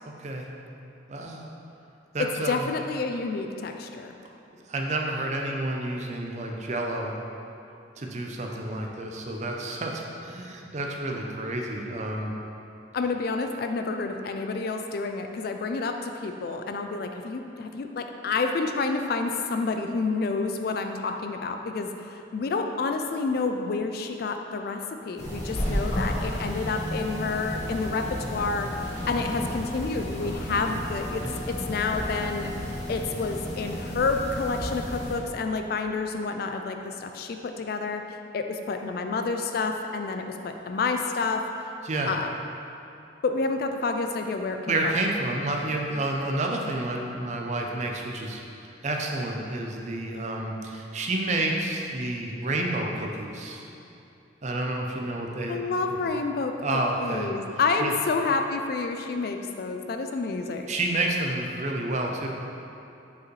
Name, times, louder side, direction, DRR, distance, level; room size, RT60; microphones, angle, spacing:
voice 1, 0.0-0.4 1.1-1.5 2.1-2.7 4.7-7.1 8.0-12.3 25.7-25.9 31.2-31.4 41.8-42.1 44.7-53.6 54.4-56.0 56.6-57.3 57.8-57.9 60.7-62.3, right 2 dB, 40° right, 1 dB, 0.5 m, -30 dB
voice 2, 2.4-4.1 12.9-24.8 25.0-41.4 42.1-42.3 43.2-45.0 55.5-60.7, left 4 dB, 55° left, 5 dB, 0.3 m, -29 dB
sound 1, 25.2-35.2, equal, 40° left, 1.2 m, -32 dB
6.9 x 4.8 x 3.1 m, 2.8 s
head